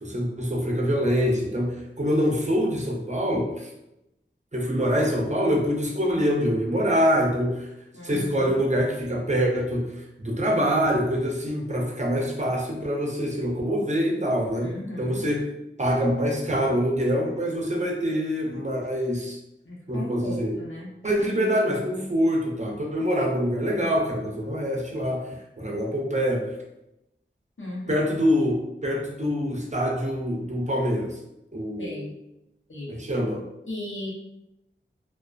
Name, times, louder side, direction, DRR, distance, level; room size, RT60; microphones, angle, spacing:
voice 1, 0.0-3.7 4.5-7.7 8.0-9.9 10.2-15.5 15.8-19.4 19.9-20.5 21.0-26.5 27.9-31.2 31.5-32.1 32.9-33.4, equal, 35° right, -1 dB, 0.5 m, -25 dB
voice 2, 7.9-8.6 14.6-15.2 19.7-20.9 27.6-28.0 31.8-32.1 32.7-32.9 33.7-34.1, left 1 dB, 80° left, -5 dB, 0.8 m, -36 dB
2.3 x 2.3 x 2.3 m, 0.87 s
wide cardioid pair, 45°, 20 cm